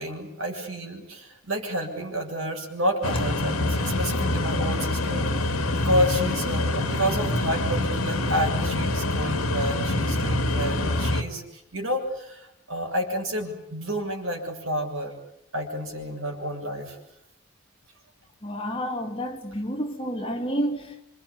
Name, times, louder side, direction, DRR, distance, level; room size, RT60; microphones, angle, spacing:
voice 1, 0.0-15.2 15.5-17.0, equal, 65° right, 7.2 m, -30 dB
sound 1, 3.0-11.2, left 2 dB, 75° left, 2.5 m, -25 dB
voice 2, 18.4-21.0, equal, 25° left, 3.0 m, -30 dB
28.0 x 25.0 x 8.6 m
head